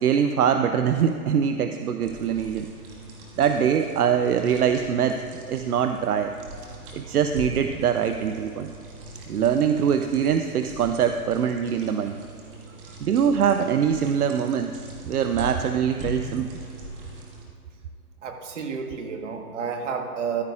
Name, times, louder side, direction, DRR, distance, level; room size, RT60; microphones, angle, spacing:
voice 1, 0.0-2.7 3.4-6.4 6.9-8.7 9.3-12.2 13.0-16.5, right 8 dB, 75° right, 7 dB, 0.7 m, -23 dB
sound 1, 2.0-17.4, right 1 dB, 35° right, 1.8 m, -40 dB
voice 2, 18.2-20.4, right 6 dB, 50° right, 4 dB, 1.5 m, -31 dB
14.0 x 11.0 x 2.4 m, 2.5 s
hypercardioid pair, 150°, 45 cm